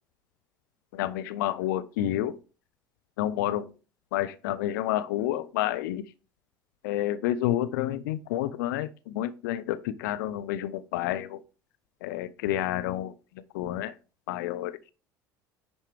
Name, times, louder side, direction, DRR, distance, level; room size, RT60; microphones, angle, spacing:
voice 1, 0.9-2.4 3.2-3.7 4.1-6.0 6.8-11.4 12.0-13.1 13.5-13.9 14.3-14.8, left 13 dB, 70° left, 13 dB, 0.5 m, -29 dB
10.0 x 4.4 x 3.3 m, 0.34 s
figure-of-eight pair, 65°, 11 cm